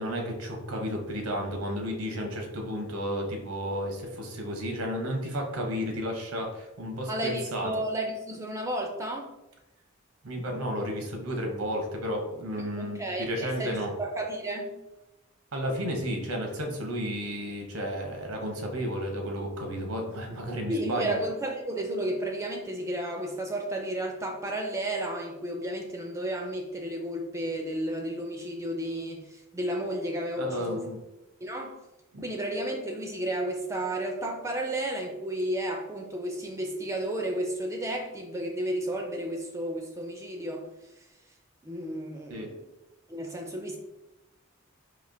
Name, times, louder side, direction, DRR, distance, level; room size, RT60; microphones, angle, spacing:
voice 1, 0.0-7.7 10.2-13.9 15.5-21.2 30.4-31.0 32.1-32.2 42.3-42.5, equal, 85° right, 2 dB, 0.8 m, -32 dB
voice 2, 7.1-9.3 12.8-14.7 20.7-30.9 31.4-31.8 32.2-40.7 41.6-42.6 43.1-43.8, right 1 dB, 15° right, 2 dB, 0.3 m, -32 dB
4.2 x 2.7 x 2.6 m, 0.96 s
head